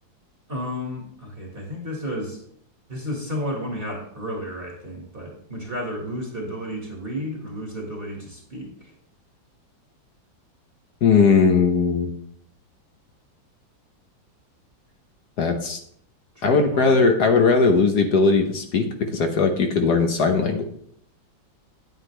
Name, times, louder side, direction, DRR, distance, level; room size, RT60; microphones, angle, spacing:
voice 1, 0.5-2.4 2.9-8.9 16.4-17.1, equal, 30° right, -1 dB, 2.0 m, -32 dB
voice 2, 11.0-12.1 15.4-15.8 16.4-20.6, left 4 dB, 60° left, 5 dB, 1.4 m, -19 dB
9.6 x 9.2 x 3.3 m, 0.65 s
omnidirectional pair, 2.1 m